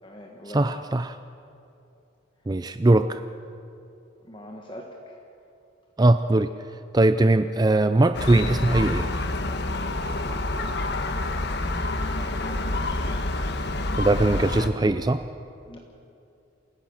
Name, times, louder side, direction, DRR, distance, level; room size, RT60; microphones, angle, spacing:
voice 1, 0.0-0.8 2.4-2.5 4.2-5.2 11.0-13.4 15.7-15.8, left 1 dB, 25° left, 0 dB, 1.5 m, -44 dB
voice 2, 0.5-1.1 2.5-3.2 6.0-6.5 6.9-9.1 14.0-15.2, right 2 dB, 20° right, 11 dB, 0.4 m, -20 dB
Gull seagull, 8.1-14.7, left 2 dB, 55° left, 1.2 m, -28 dB
28.0 x 16.0 x 6.5 m, 2.6 s
head